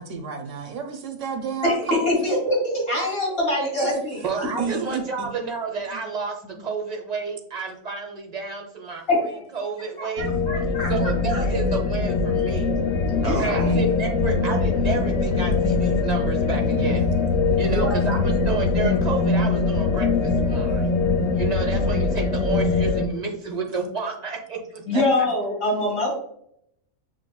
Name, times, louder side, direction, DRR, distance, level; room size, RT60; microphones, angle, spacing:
voice 1, 0.0-2.4 3.8-4.0 4.6-5.3 5.9-6.1 13.2-13.9, right 5 dB, 70° right, 5 dB, 0.9 m, -31 dB
voice 2, 1.6-4.2 9.1-9.4 10.0-10.9 11.3-11.4 13.2-13.5 17.6-18.0 24.9-26.1, left 1 dB, 45° left, -3 dB, 2.0 m, -24 dB
voice 3, 4.2-9.0 9.5-10.3 10.9-12.7 13.2-17.1 17.6-20.9 21.3-25.0, right 4 dB, 35° right, 1 dB, 0.8 m, -30 dB
sound 1, 10.2-23.1, left 4 dB, 80° left, 1.0 m, -22 dB
7.4 x 2.6 x 2.2 m, 0.71 s
omnidirectional pair, 1.4 m